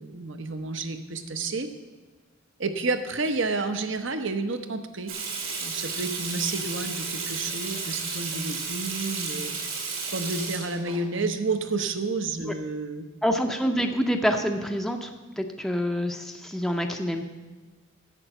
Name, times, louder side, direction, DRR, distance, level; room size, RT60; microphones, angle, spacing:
voice 1, 0.0-1.7 2.6-5.1 5.6-9.5 10.1-13.0, right 3 dB, 65° right, 8 dB, 0.9 m, -30 dB
Water tap faucet / Sink (filling or washing), 5.1-11.0, right 4 dB, 85° right, 2.5 m, -33 dB
voice 2, 13.2-17.2, equal, ahead, 4 dB, 0.6 m, -27 dB
11.0 x 7.8 x 6.0 m, 1.3 s
head